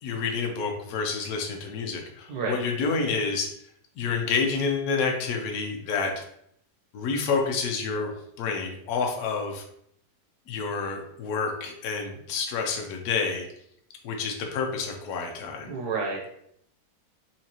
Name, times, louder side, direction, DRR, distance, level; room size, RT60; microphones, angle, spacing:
voice 1, 0.0-3.5 4.0-6.2 6.9-8.1 8.4-9.6 10.5-13.5 14.0-15.7, left 5 dB, 65° left, 1 dB, 1.0 m, -28 dB
voice 2, 15.6-16.3, right 4 dB, 65° right, -2 dB, 1.3 m, -30 dB
4.4 x 2.8 x 2.9 m, 0.71 s
omnidirectional pair, 2.0 m